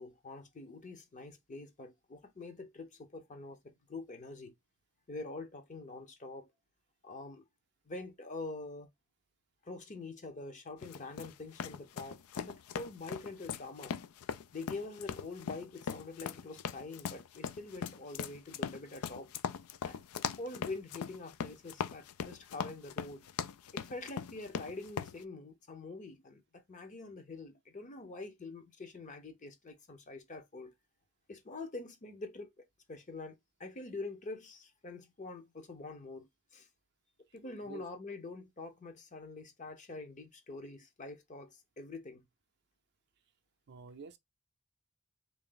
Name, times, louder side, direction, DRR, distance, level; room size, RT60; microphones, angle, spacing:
voice 1, 0.0-4.5 5.1-6.5 7.0-7.4 7.9-8.9 9.6-14.0 14.5-19.3 19.8-20.0 20.3-23.3 23.7-30.7 31.3-33.3 33.6-36.7 37.3-42.3, left 3 dB, 35° left, 0.7 m, -45 dB
sound 1, 10.8-25.2, left 7 dB, 80° left, 0.4 m, -40 dB
voice 2, 43.7-44.2, right 5 dB, 50° right, 0.5 m, -48 dB
3.4 x 2.6 x 3.8 m
head